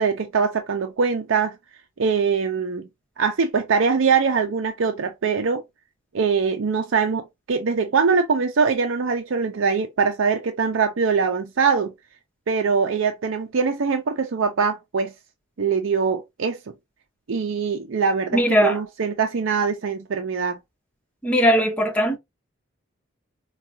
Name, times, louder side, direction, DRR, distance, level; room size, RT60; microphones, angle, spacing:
voice 1, 0.0-1.6 2.0-2.9 3.2-5.6 6.1-11.9 12.5-15.1 15.6-16.6 17.3-20.6, right 5 dB, 90° right, 0.5 m, -22 dB
voice 2, 18.3-18.8 21.2-22.2, equal, 5° left, 1.0 m, -19 dB
4.6 x 2.3 x 2.7 m
head